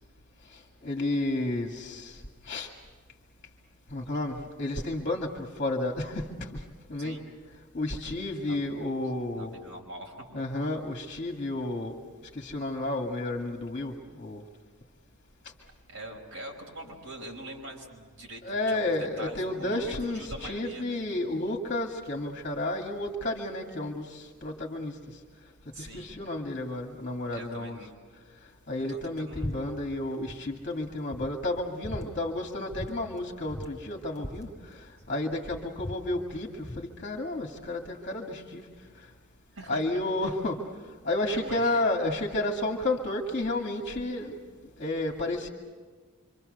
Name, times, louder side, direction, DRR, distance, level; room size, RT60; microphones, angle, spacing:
voice 1, 0.5-2.7 3.9-6.6 6.9-7.2 7.7-9.5 10.3-12.0 12.3-14.4 16.9-17.0 18.4-25.0 25.8-27.8 28.7-38.7 39.0-39.1 39.7-40.6 41.0-44.4 44.8-45.5, left 2 dB, 40° left, 2 dB, 2.1 m, -31 dB
voice 2, 8.5-8.8 9.3-10.4 15.9-21.0 25.7-26.1 27.3-27.9 28.9-29.5 39.5-40.3 41.3-41.8, right 1 dB, 65° right, 0 dB, 5.4 m, -43 dB
sound 1, 29.4-29.6 29.8-30.4 30.8-30.9 31.1-32.1 32.7-32.9 33.2-33.3 33.5-35.1 35.5-36.9, left 1 dB, 15° left, 3.9 m, -39 dB
26.0 x 26.0 x 6.7 m, 1.5 s
head